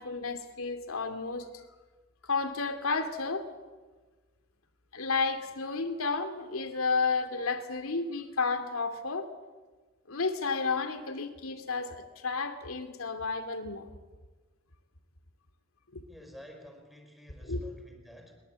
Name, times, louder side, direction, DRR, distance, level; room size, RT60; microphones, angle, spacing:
voice 1, 0.0-1.6 2.3-3.5 4.9-9.3 10.1-13.9 15.9-16.1 17.4-17.6, left 4 dB, 80° left, 7 dB, 2.5 m, -32 dB
voice 2, 16.1-18.3, equal, ahead, 3 dB, 4.6 m, -51 dB
22.5 x 22.0 x 8.2 m, 1.3 s
head